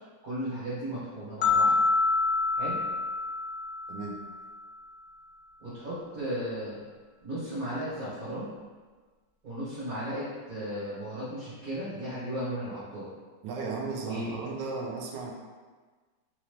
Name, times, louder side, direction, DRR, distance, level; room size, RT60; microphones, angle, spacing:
voice 1, 0.2-1.8 2.5-2.8 5.6-6.8 7.2-8.5 9.4-13.1 14.1-14.3, equal, 55° right, -11 dB, 1.5 m, -35 dB
sound 1, 1.4-4.5, left 4 dB, 70° left, 0.7 m, -27 dB
voice 2, 3.9-4.2 13.4-15.3, right 4 dB, 85° right, 1 dB, 1.3 m, -35 dB
4.1 x 2.9 x 3.2 m, 1.4 s
omnidirectional pair, 1.9 m